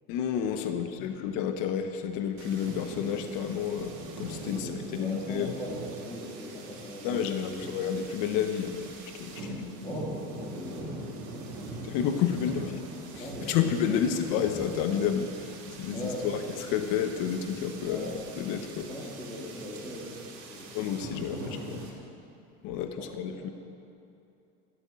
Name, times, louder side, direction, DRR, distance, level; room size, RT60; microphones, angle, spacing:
voice 1, 0.1-5.6 7.0-9.6 11.8-12.8 13.1-16.3 16.7-18.9 20.7-21.9 22.6-23.5, left 8 dB, 65° left, 7 dB, 1.1 m, -30 dB
voice 2, 0.7-1.4 4.4-7.7 9.4-12.0 13.2-14.2 15.9-16.5 17.8-21.6 22.9-23.5, equal, 10° left, -8 dB, 2.7 m, -41 dB
sound 1, 2.4-21.9, right 2 dB, 65° right, 3.3 m, -42 dB
13.0 x 8.0 x 8.6 m, 2.7 s
supercardioid pair, 120°, 36 cm